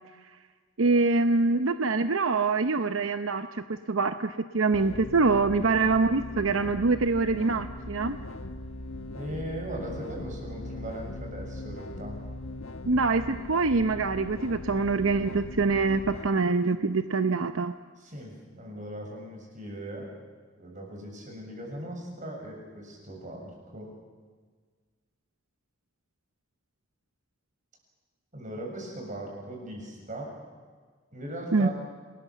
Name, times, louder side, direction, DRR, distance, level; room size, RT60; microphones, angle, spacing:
voice 1, 0.8-8.2 12.9-17.7 31.5-31.7, right 3 dB, 80° right, 9 dB, 0.8 m, -25 dB
sound 1, 4.7-16.3, left 2 dB, 75° left, 1.2 m, -40 dB
voice 2, 9.1-12.3 18.0-20.1 20.6-23.9 28.3-30.3 31.1-31.7, right 1 dB, 40° right, 1 dB, 7.1 m, -39 dB
28.0 x 20.0 x 7.3 m, 1.5 s
head